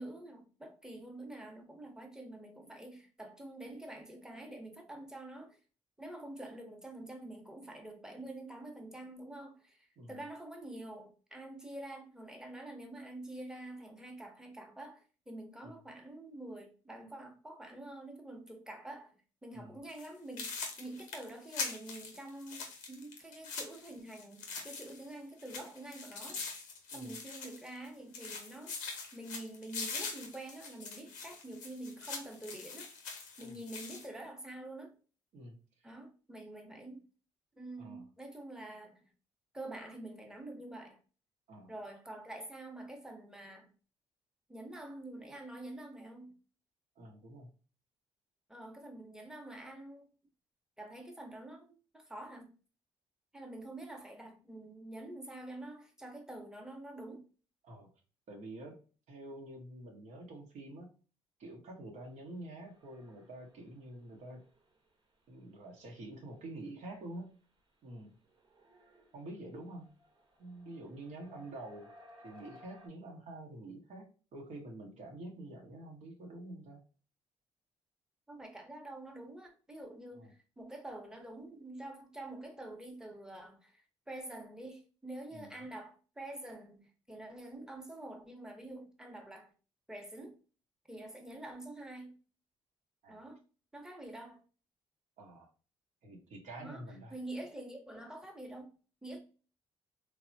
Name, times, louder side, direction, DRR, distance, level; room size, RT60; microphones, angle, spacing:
voice 1, 0.0-5.6 6.0-26.4 26.9-28.7 29.1-32.9 33.4-34.9 35.8-37.0 37.6-39.0 39.5-41.0 41.7-43.7 44.5-46.3 48.5-50.1 50.8-52.5 53.3-57.2 78.3-89.5 89.9-90.3 90.9-92.1 93.1-93.4 93.7-94.4 96.6-96.8 97.1-98.7 99.0-99.2, right 1 dB, 5° right, 0.8 m, -47 dB
sound 1, 19.9-20.1 20.4-25.1 25.4-27.9 28.1-34.1, left 4 dB, 90° left, 0.6 m, -43 dB
voice 2, 35.3-35.9 37.8-38.1 41.5-41.7 47.0-47.5 57.6-57.9 58.3-58.7 59.1-60.9 61.4-64.4 65.3-67.3 67.8-68.1 69.1-69.9 70.4-71.9 72.2-76.8 80.1-80.3 85.3-85.5 93.0-93.2 95.2-95.5 96.0-97.2, right 1 dB, 65° right, 0.8 m, -47 dB
sound 2, 62.4-72.9, left 1 dB, 40° right, 0.9 m, -61 dB
3.2 x 2.0 x 2.5 m
supercardioid pair, 55°, 13 cm